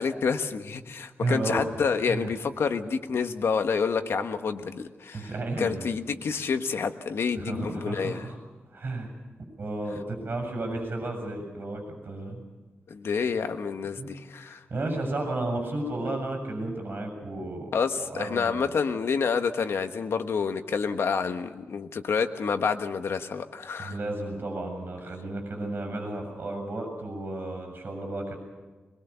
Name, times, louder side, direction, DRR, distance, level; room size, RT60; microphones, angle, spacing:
voice 1, 0.0-5.3 5.6-8.2 12.9-14.6 17.7-24.0, left 5 dB, 85° left, 7 dB, 1.3 m, -28 dB
voice 2, 1.2-1.6 2.1-2.3 5.1-5.9 7.4-8.4 8.7-9.1 9.6-12.4 14.0-14.1 14.5-17.7 18.0-18.7 23.8-28.4, right 2 dB, 55° right, 2 dB, 6.7 m, -33 dB
22.5 x 22.0 x 7.0 m, 1.3 s
wide cardioid pair, 115°, 4 cm